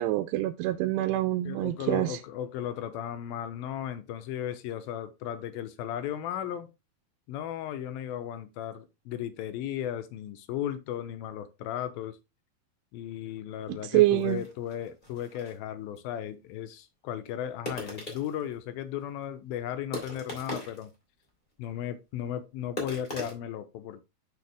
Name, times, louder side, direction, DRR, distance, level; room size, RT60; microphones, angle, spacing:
voice 1, 0.0-2.2 13.8-14.4, right 16 dB, 90° right, 2.6 m, -26 dB
voice 2, 1.4-6.7 7.3-12.2 12.9-20.9 21.6-24.0, left 10 dB, 75° left, 2.5 m, -36 dB
sound 1, 13.7-13.8 14.0-15.6 16.0-16.1 17.7-18.5 19.1-19.2 19.9-20.9 21.3-21.4 22.8-23.3, left 1 dB, 15° left, 2.5 m, -39 dB
6.6 x 6.0 x 3.5 m
omnidirectional pair, 4.6 m